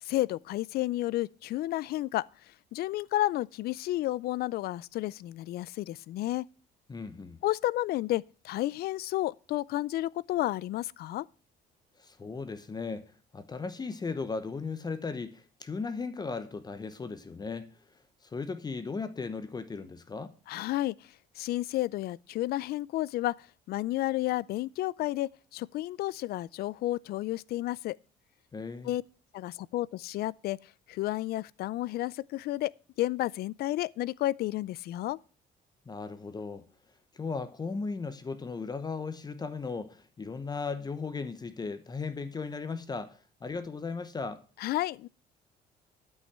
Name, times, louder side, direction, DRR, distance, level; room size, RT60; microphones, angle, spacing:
voice 1, 0.0-6.5 7.4-11.3 20.5-28.0 28.8-29.0 29.3-32.7 33.0-35.2 44.6-45.1, left 15 dB, 65° left, 0.4 m, -31 dB
voice 2, 6.9-7.4 12.0-20.3 28.5-28.9 35.9-36.7 37.1-44.4, left 4 dB, 25° left, 0.9 m, -37 dB
12.0 x 5.6 x 7.3 m
cardioid pair, 110°, 17 cm